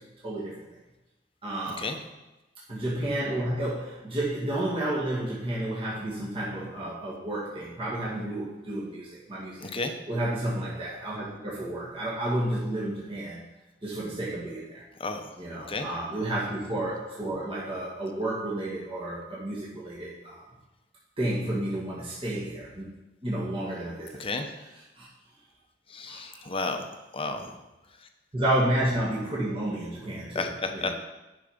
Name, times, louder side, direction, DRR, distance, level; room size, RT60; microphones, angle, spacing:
voice 1, 0.2-0.5 1.4-1.9 2.7-9.7 10.1-13.4 13.8-14.8 15.4-20.4 21.2-22.9 23.2-24.2 25.0-25.1 26.1-26.5 27.4-27.5 28.3-30.9, right 1 dB, 30° right, -7 dB, 2.1 m, -31 dB
voice 2, 9.6-9.9 15.0-15.3 15.7-15.9 24.2-24.5 25.9-26.8 27.1-27.5 30.3-30.9, left 3 dB, 30° left, 5 dB, 0.9 m, -32 dB
11.0 x 5.7 x 5.1 m, 1.0 s
head